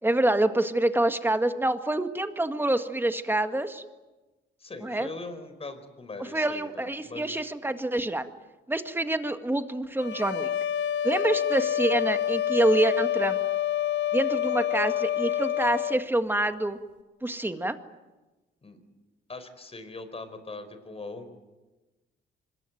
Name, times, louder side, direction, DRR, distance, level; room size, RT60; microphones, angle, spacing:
voice 1, 0.0-3.8 4.8-5.1 6.3-8.3 8.7-10.5 11.0-13.4 14.1-16.8 17.2-17.8, right 1 dB, 10° right, 8 dB, 1.9 m, -26 dB
voice 2, 4.6-7.5 18.6-18.8 19.3-21.3, left 3 dB, 30° left, 10 dB, 4.8 m, -41 dB
sound 1, 10.0-16.0, left 11 dB, 65° left, 1.3 m, -27 dB
25.0 x 21.5 x 9.3 m, 1.1 s
cardioid pair, 90°, 20 cm